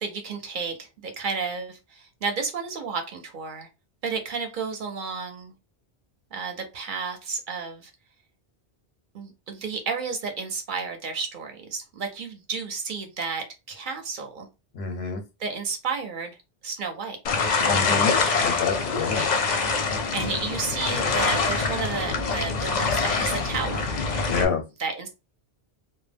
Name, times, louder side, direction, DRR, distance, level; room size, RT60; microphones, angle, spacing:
voice 1, 0.0-3.7 4.0-5.5 6.3-7.9 9.1-14.5 15.4-16.3 16.6-17.2 18.1-18.3 19.1-19.5 20.1-23.9 24.8-25.1, right 5 dB, 60° right, 0.7 m, -32 dB
voice 2, 14.7-15.2 17.7-18.1 18.4-19.2 24.3-24.6, left 5 dB, 90° left, 1.0 m, -27 dB
sound 1, 17.2-24.4, left 4 dB, 55° left, 0.5 m, -25 dB
2.1 x 2.0 x 3.3 m
omnidirectional pair, 1.0 m